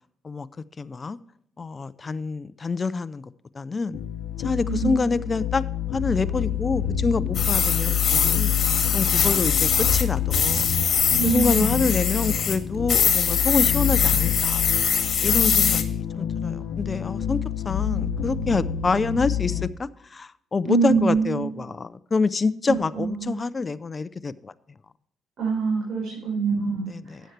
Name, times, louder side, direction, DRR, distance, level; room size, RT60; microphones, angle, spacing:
voice 1, 0.8-1.2 1.6-4.0 4.4-5.6 5.9-8.6 8.9-10.7 11.2-14.6 15.2-17.4 17.6-24.5 26.9-27.2, left 4 dB, 30° left, 0.6 m, -27 dB
sound 1, 3.9-19.7, left 9 dB, 85° left, 0.7 m, -27 dB
voice 2, 4.6-5.0 11.1-11.9 20.6-21.7 22.6-23.3 25.4-27.3, right 5 dB, 65° right, 5.0 m, -25 dB
sound 2, 7.3-10.0 10.3-12.6 12.9-15.8, left 7 dB, 55° left, 1.8 m, -23 dB
12.5 x 9.2 x 3.3 m
cardioid pair, 90°, 0 cm